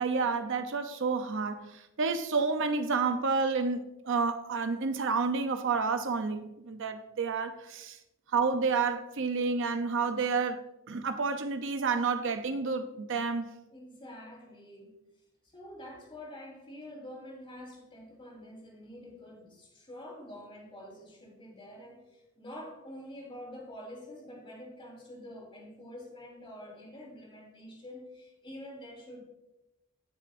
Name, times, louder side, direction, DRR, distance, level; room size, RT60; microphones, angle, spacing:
voice 1, 0.0-8.0 8.3-13.5, right 4 dB, 60° right, 0.6 m, -30 dB
voice 2, 13.7-15.0 15.4-29.2, left 1 dB, 25° left, 3.0 m, -47 dB
17.5 x 6.7 x 2.6 m
head